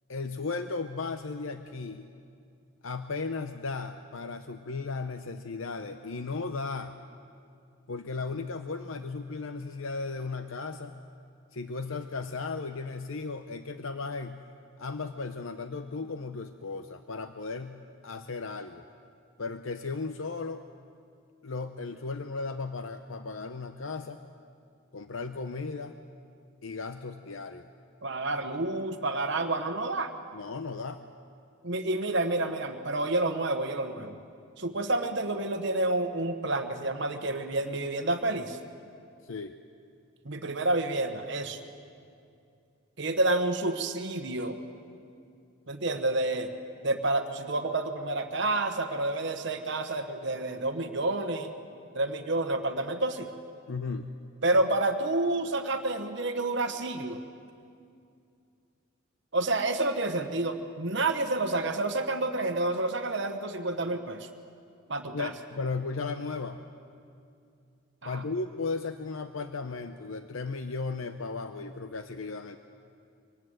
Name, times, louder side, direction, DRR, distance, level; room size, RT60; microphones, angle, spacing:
voice 1, 0.1-2.1 2.8-6.9 7.9-10.9 11.5-14.4 14.8-18.8 19.4-20.6 21.4-24.2 24.9-25.9 26.6-27.7 30.3-31.0 39.2-39.5 53.7-54.1 65.1-66.6 68.0-72.6, left 4 dB, 70° left, 8 dB, 0.7 m, -35 dB
voice 2, 28.0-30.1 31.6-34.2 34.6-38.6 40.2-41.6 43.0-44.6 45.7-46.5 46.8-51.5 51.9-53.3 54.4-57.2 59.3-64.3 64.9-65.3 68.0-68.2, right 2 dB, 55° right, 7 dB, 1.1 m, -29 dB
24.0 x 19.0 x 7.9 m, 2.4 s
head